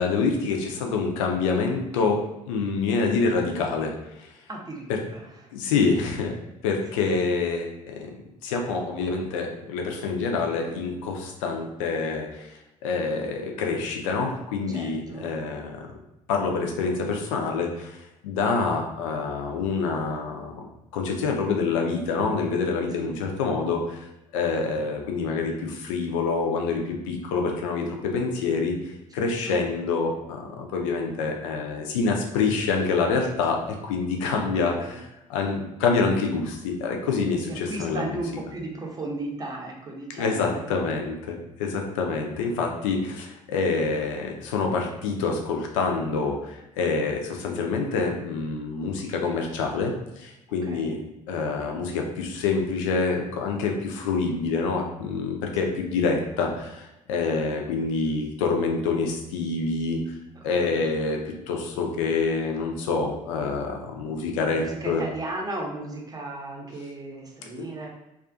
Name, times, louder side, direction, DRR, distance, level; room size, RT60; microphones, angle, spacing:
voice 1, 0.0-4.3 4.9-5.0 5.5-6.3 6.6-12.5 12.8-15.9 16.3-20.7 20.9-24.0 24.3-35.0 35.3-38.2 40.2-51.0 51.3-60.0 60.4-61.2 61.5-65.0, left 4 dB, 75° left, 2 dB, 0.4 m, -26 dB
voice 2, 4.5-4.8 5.1-5.2 14.7-15.3 23.0-23.1 29.2-29.6 34.5-35.0 37.7-40.9 50.6-51.0 55.6-55.7 60.5-60.9 64.4-67.9, right 2 dB, 20° right, 0 dB, 0.7 m, -36 dB
2.4 x 2.4 x 2.4 m, 0.90 s
figure-of-eight pair, 50°, 17 cm